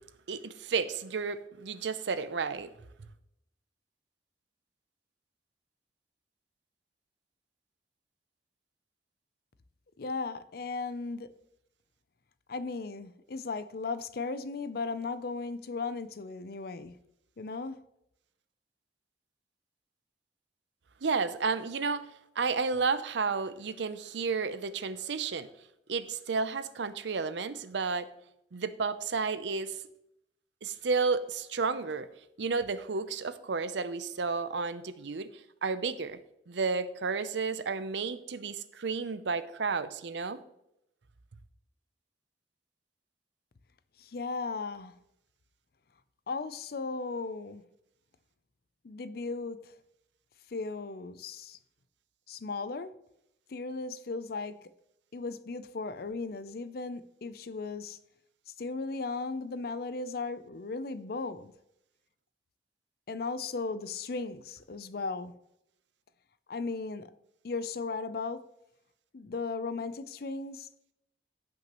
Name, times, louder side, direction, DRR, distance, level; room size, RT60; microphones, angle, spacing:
voice 1, 0.3-2.7 21.0-22.0 22.4-25.5 25.9-28.1 28.5-29.8 30.6-32.1 32.4-35.3 35.6-36.2 36.5-40.4, right 4 dB, 80° right, 13 dB, 0.6 m, -32 dB
voice 2, 10.0-11.3 12.5-17.0 17.4-17.8 44.0-44.9 46.3-47.6 48.8-49.8 50.5-51.6 52.3-52.9 53.5-54.6 55.1-58.0 58.6-61.5 63.1-65.3 66.5-67.1 67.4-68.4 69.1-70.7, left 4 dB, 55° left, 14 dB, 0.5 m, -36 dB
15.5 x 5.9 x 3.0 m, 0.81 s
head